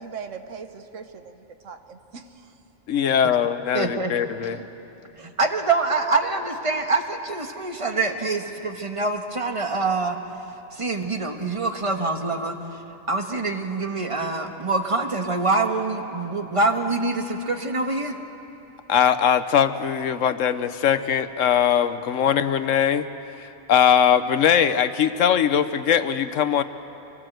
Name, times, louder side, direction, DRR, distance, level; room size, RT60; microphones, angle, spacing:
voice 1, 0.0-2.5, right 6 dB, 80° right, 8 dB, 1.4 m, -40 dB
voice 2, 2.9-4.6 18.9-23.1 23.4-26.6, left 8 dB, 85° left, 12 dB, 1.2 m, -21 dB
voice 3, 3.7-4.1 4.6-4.7 5.4-10.2 10.7-12.6 13.1-18.2, right 3 dB, 25° right, 5 dB, 1.3 m, -25 dB
25.0 x 18.5 x 7.9 m, 3.0 s
omnidirectional pair, 1.3 m